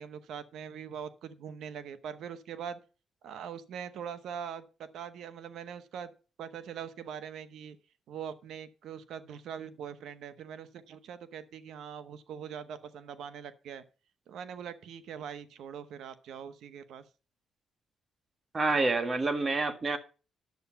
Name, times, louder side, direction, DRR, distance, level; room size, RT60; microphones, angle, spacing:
voice 1, 0.0-2.8 3.2-4.6 4.9-6.1 6.4-7.8 8.1-13.8 14.3-17.0, right 8 dB, 75° right, 0.9 m, -42 dB
voice 2, 18.5-20.0, right 3 dB, 35° right, 1.7 m, -28 dB
10.5 x 6.8 x 5.7 m
cardioid pair, 90°, 0 cm